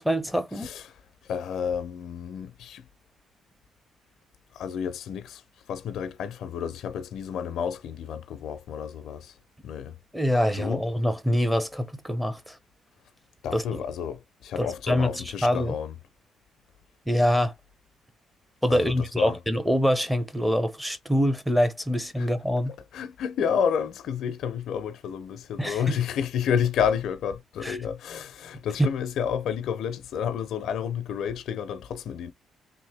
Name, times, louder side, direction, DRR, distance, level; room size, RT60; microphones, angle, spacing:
voice 1, 0.0-0.7 10.1-12.6 13.5-13.6 14.6-15.7 17.1-17.5 18.6-22.7 25.6-26.0 27.6-27.8, equal, ahead, 0.8 m, -25 dB
voice 2, 0.6-2.8 4.5-5.4 5.7-9.3 9.6-10.0 10.5-10.9 13.4-16.0 18.7-19.4 22.1-22.3 22.7-32.3, left 8 dB, 75° left, 0.6 m, -30 dB
3.5 x 2.6 x 3.4 m
cardioid pair, 90°, 0 cm